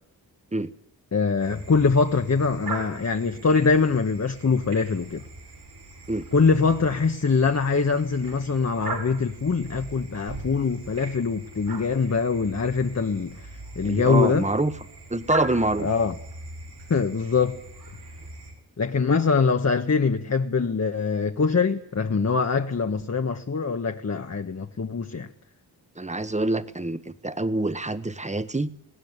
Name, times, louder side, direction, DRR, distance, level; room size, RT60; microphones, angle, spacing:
voice 1, 1.1-5.2 6.3-13.4 13.8-14.4 15.8-16.1 16.9-17.6 18.8-25.3, left 4 dB, 40° left, 6 dB, 1.4 m, -23 dB
sound 1, 1.4-18.5, right 3 dB, 75° right, 6.7 m, -40 dB
voice 2, 13.8-14.7 15.1-15.9 26.0-28.7, right 2 dB, 15° right, 13 dB, 1.4 m, -26 dB
20.5 x 16.5 x 9.7 m, 0.74 s
cardioid pair, 55°, 39 cm